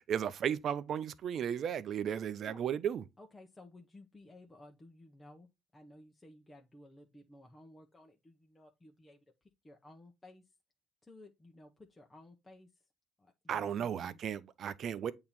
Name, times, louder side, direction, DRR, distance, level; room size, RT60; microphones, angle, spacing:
voice 1, 0.0-3.0 13.5-15.1, right 8 dB, 55° right, 0.6 m, -35 dB
voice 2, 3.2-9.2 9.6-10.4 11.0-12.7 13.2-14.2, left 1 dB, 20° left, 1.1 m, -56 dB
8.5 x 3.0 x 4.0 m
hypercardioid pair, 60°, 0 cm